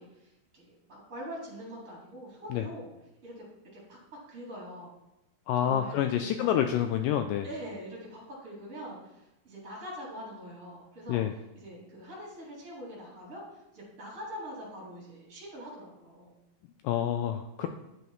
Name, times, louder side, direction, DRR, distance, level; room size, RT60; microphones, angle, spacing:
voice 1, 0.0-2.9 3.2-3.4 3.7-4.0 4.3-4.9 5.6-6.8 7.4-11.2 11.5-16.3 17.6-17.7, equal, 20° right, -5 dB, 3.7 m, -44 dB
voice 2, 5.5-7.5 11.1-11.3 16.8-17.7, left 10 dB, 85° left, 7 dB, 1.9 m, -28 dB
10.5 x 7.9 x 3.1 m, 0.94 s
omnidirectional pair, 4.3 m